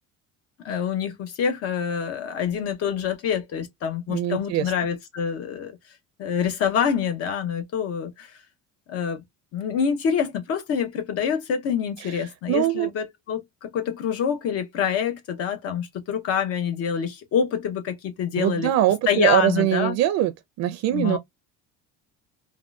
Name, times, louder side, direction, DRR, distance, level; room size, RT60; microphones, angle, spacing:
voice 1, 0.6-5.8 6.2-8.4 8.9-9.2 9.5-18.7 19.1-19.9 20.9-21.2, left 7 dB, 50° left, 0.7 m, -26 dB
voice 2, 4.1-4.7 12.0-12.9 18.4-20.3 20.6-21.2, right 13 dB, 60° right, 0.5 m, -22 dB
3.6 x 2.2 x 2.3 m
cardioid pair, 155°, 31 cm